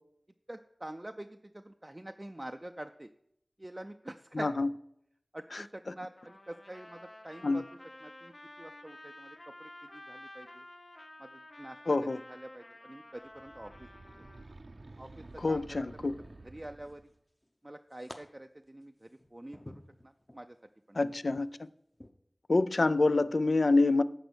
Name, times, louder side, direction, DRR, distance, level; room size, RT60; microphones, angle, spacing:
voice 1, 0.5-3.1 3.6-4.5 5.3-7.6 8.0-10.7 11.2-13.9 14.1-14.2 15.0-16.1 16.4-17.0 17.6-20.6 20.9-21.2, right 1 dB, 30° right, 0.4 m, -46 dB
voice 2, 4.3-4.7 5.5-5.6 7.4-7.6 11.9-12.2 15.4-16.2 20.9-21.7 22.5-24.0, left 3 dB, 75° left, 0.3 m, -27 dB
Trumpet, 6.2-14.5, left 1 dB, 55° left, 1.0 m, -51 dB
sound 1, 13.2-17.2, right 2 dB, 75° right, 0.6 m, -51 dB
sound 2, 15.0-15.5 16.2-17.1 17.4-18.2 18.6-20.5 21.0-21.2 21.9-22.1, left 1 dB, 25° left, 0.8 m, -52 dB
10.0 x 4.4 x 6.2 m
wide cardioid pair, 40°, 0 cm